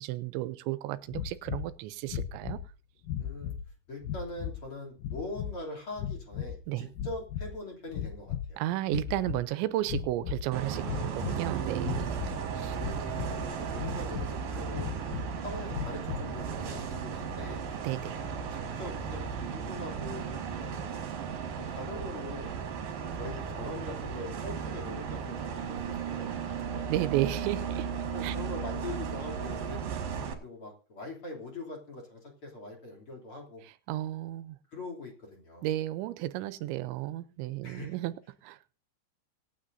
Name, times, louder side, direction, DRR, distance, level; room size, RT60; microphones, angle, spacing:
voice 1, 0.0-2.6 6.7-6.9 8.6-12.2 12.6-12.8 17.8-18.2 26.9-27.9 28.2-28.4 33.9-34.6 35.6-38.1 38.4-38.6, right 15 dB, 85° right, 3.1 m, -33 dB
sound 1, 1.1-1.7 2.1-2.7 3.0-3.7 4.0-4.6 5.0-5.5 6.0-6.6 6.9-7.6 7.9-8.5 8.9-9.4 9.8-10.5 10.8-11.4 11.8-12.4 12.8-13.4 13.7-14.3 14.7-15.3 15.7-16.3, left 9 dB, 75° left, 2.0 m, -36 dB
voice 2, 3.2-3.5 3.9-8.6 10.9-11.1 12.6-14.9 15.4-17.6 18.5-20.8 21.7-22.5 23.1-26.9 28.1-29.8 30.4-33.6 34.7-35.7 37.6-38.0, left 2 dB, 35° left, 3.4 m, -42 dB
Bus, 10.5-30.3, right 6 dB, 55° right, 3.3 m, -35 dB
25.0 x 9.4 x 2.7 m
omnidirectional pair, 5.1 m